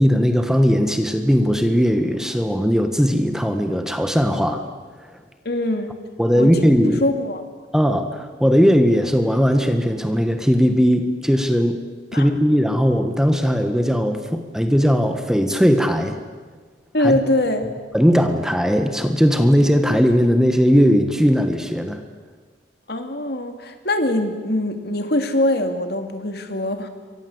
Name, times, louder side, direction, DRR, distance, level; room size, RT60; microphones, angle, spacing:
voice 1, 0.0-4.6 5.0-5.1 6.2-7.0 7.7-11.8 12.1-16.2 17.0-17.2 17.9-22.0, equal, 5° right, 6 dB, 1.5 m, -18 dB
voice 2, 5.4-5.9 6.3-6.6 7.0-7.4 12.1-12.3 16.9-17.7 22.9-26.9, left 1 dB, 55° left, 6 dB, 2.7 m, -22 dB
28.0 x 24.0 x 8.0 m, 1.5 s
head